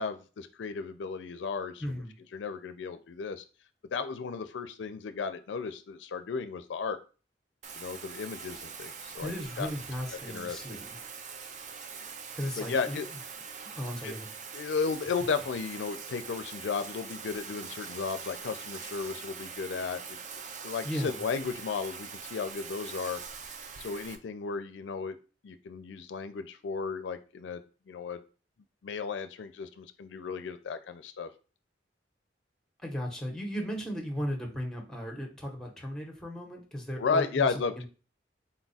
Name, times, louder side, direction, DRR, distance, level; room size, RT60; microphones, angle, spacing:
voice 1, 0.0-1.8 2.3-3.4 3.9-7.0 7.8-9.7 10.2-10.8 12.6-13.1 14.0-14.1 14.5-20.2 20.6-23.2 23.8-25.2 25.4-28.2 28.8-31.3 37.0-37.8, left 5 dB, 90° left, 10 dB, 0.4 m, -34 dB
voice 2, 1.8-2.2 9.2-11.0 12.3-13.0 13.7-14.3 20.8-21.2 32.8-37.9, equal, 5° left, 1 dB, 0.9 m, -36 dB
Bathtub (filling or washing), 7.6-24.2, right 6 dB, 45° right, 0.5 m, -43 dB
4.1 x 2.4 x 4.0 m, 0.35 s
head